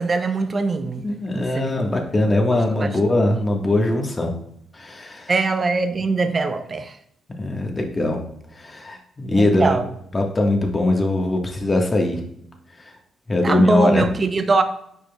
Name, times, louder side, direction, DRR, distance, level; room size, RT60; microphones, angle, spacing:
voice 1, 0.0-1.1 1.3-1.9 2.5-2.9 5.3-7.0 9.3-9.9 13.4-14.6, right 3 dB, 40° right, 0.6 m, -22 dB
voice 2, 1.0-4.3 4.7-5.3 7.4-8.2 8.6-9.8 10.1-12.2 13.3-14.1, left 2 dB, 30° left, 1.5 m, -21 dB
8.9 x 4.9 x 2.4 m
hypercardioid pair, 45°, 0 cm